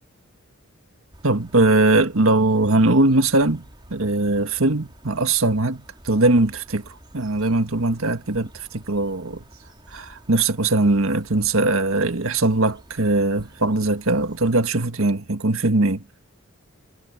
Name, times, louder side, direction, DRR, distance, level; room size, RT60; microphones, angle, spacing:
sound 1, 1.1-14.5, right 1 dB, 20° right, 5.0 m, -49 dB
voice 1, 1.2-3.6 3.9-6.8 7.1-9.4 9.9-16.0, right 2 dB, 75° right, 1.7 m, -20 dB
head